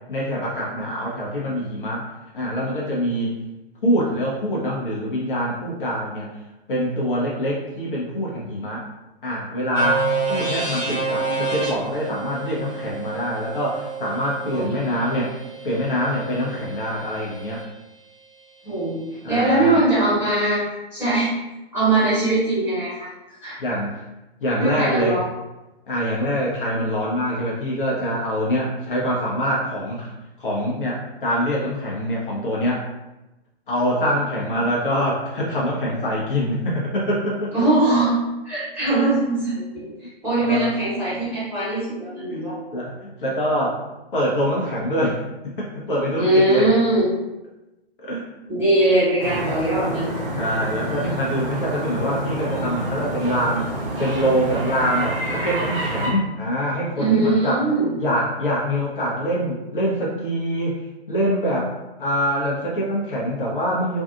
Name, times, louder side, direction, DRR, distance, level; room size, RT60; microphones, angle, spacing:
voice 1, 0.1-2.1 2.3-3.4 3.8-6.3 6.7-8.8 9.2-15.3 15.6-17.6 19.2-19.8 23.6-24.0 24.4-25.2 25.9-30.1 30.4-32.9 33.7-37.5 40.4-40.7 42.3-42.4 42.7-43.8 44.1-46.7 48.0-48.3 50.4-53.7 54.0-57.6 58.0-61.7 62.0-64.0, equal, 55° left, -4 dB, 0.8 m, -24 dB
sound 1, 9.7-17.6, right 4 dB, 30° right, 0.9 m, -29 dB
voice 2, 14.4-15.2 18.6-19.0 19.3-20.6 20.9-21.3 21.7-23.1 23.4-23.5 24.6-25.2 37.5-38.1 38.4-42.5 46.2-47.1 48.5-50.1 57.0-57.9, right 2 dB, 5° right, -13 dB, 1.3 m, -21 dB
sound 2, 49.2-56.1, right 1 dB, 60° right, 0.9 m, -28 dB
2.6 x 2.4 x 2.5 m, 1.0 s
figure-of-eight pair, 120°, 31 cm